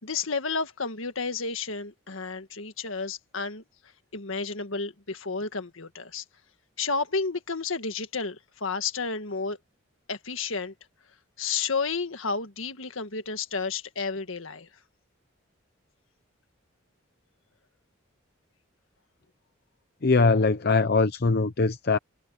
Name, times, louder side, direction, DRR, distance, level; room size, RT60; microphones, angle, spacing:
voice 1, 0.0-3.6 4.1-6.2 6.8-9.6 10.1-10.7 11.4-14.7, left 4 dB, 75° left, 1.7 m, -31 dB
voice 2, 20.0-22.0, left 3 dB, 50° left, 0.7 m, -22 dB
head